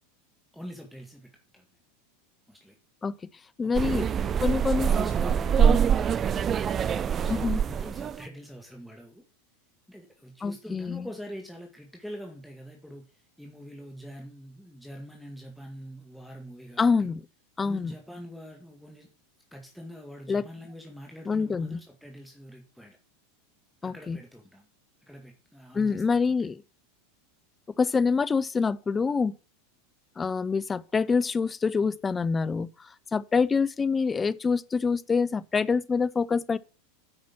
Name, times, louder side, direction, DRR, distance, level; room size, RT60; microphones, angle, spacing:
voice 1, 0.5-1.7 2.5-2.8 3.6-4.4 4.7-6.2 6.7-9.2 9.9-16.9 17.6-19.1 19.5-23.0 23.8-24.7 25.0-26.4, equal, ahead, 1.9 m, -44 dB
voice 2, 3.6-4.1 4.4-4.9 5.6-5.8 7.3-7.6 10.4-11.1 16.8-17.2 17.6-17.9 20.3-20.4 21.3-21.8 23.8-24.2 25.7-26.6 27.8-29.3 30.2-32.7 33.1-36.6, left 5 dB, 20° left, 0.6 m, -26 dB
sound 1, 3.7-8.2, right 8 dB, 30° right, 0.5 m, -24 dB
8.9 x 6.0 x 5.9 m
hypercardioid pair, 90°, 0 cm